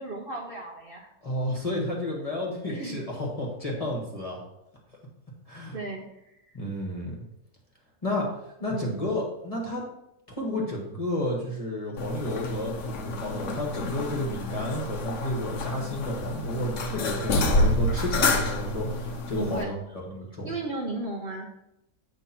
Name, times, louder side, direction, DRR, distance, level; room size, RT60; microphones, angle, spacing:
voice 1, 0.0-1.1 2.7-3.0 5.7-6.4 8.6-9.1 19.3-19.7 20.4-21.5, right 2 dB, 40° right, -2 dB, 1.0 m, -35 dB
voice 2, 1.2-4.4 5.5-5.8 6.5-7.1 8.0-9.9 10.3-19.7 20.1-20.5, left 1 dB, 25° left, -2 dB, 1.5 m, -31 dB
sound 1, 12.0-19.6, left 2 dB, 55° left, 1.0 m, -28 dB
8.4 x 3.5 x 5.9 m, 0.84 s
omnidirectional pair, 1.6 m